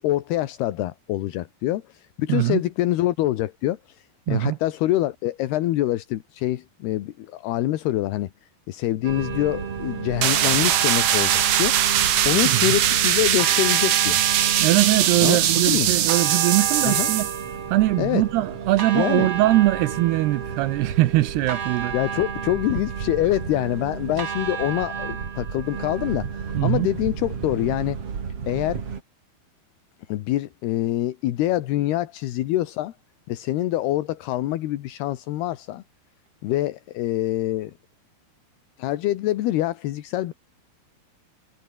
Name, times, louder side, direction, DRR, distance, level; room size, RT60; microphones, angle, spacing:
voice 1, 0.0-8.3 8.7-11.8 12.2-14.2 15.2-15.4 15.7-15.9 16.8-17.1 18.0-18.2 18.9-19.3 21.9-28.0 28.5-28.8 30.1-32.9 33.3-35.8 36.4-37.7 38.8-40.3, left 15 dB, 70° left, 3.0 m, -25 dB
voice 2, 2.3-2.6 4.3-4.6 12.5-12.7 14.6-17.3 17.7-21.9 26.5-26.9, right 17 dB, 75° right, 2.6 m, -21 dB
sound 1, 9.0-29.0, right 6 dB, 40° right, 2.9 m, -31 dB
sound 2, 10.2-17.4, right 11 dB, 60° right, 2.6 m, -21 dB
omnidirectional pair, 5.2 m